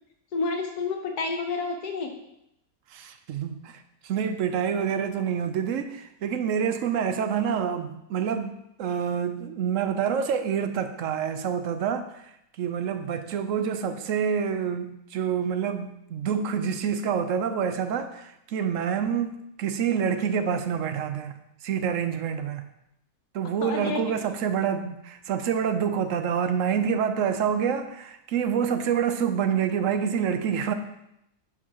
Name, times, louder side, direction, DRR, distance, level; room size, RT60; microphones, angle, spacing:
voice 1, 0.3-2.1 23.6-24.0, left 4 dB, 75° left, 3 dB, 1.4 m, -29 dB
voice 2, 2.9-12.3 12.6-22.7 23.3-30.7, right 7 dB, 65° right, 9 dB, 0.9 m, -27 dB
10.5 x 5.0 x 2.9 m, 0.81 s
omnidirectional pair, 1.7 m